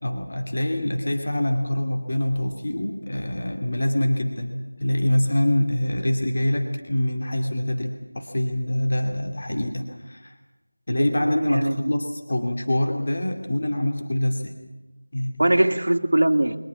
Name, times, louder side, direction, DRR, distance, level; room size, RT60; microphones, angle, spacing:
voice 1, 0.0-10.3 10.9-14.6 15.1-15.5, left 1 dB, 45° left, 3 dB, 2.5 m, -25 dB
voice 2, 11.0-11.9 15.4-16.6, right 1 dB, 65° right, 6 dB, 1.9 m, -22 dB
23.0 x 20.0 x 8.4 m, 1.1 s
figure-of-eight pair, 175°, 0 cm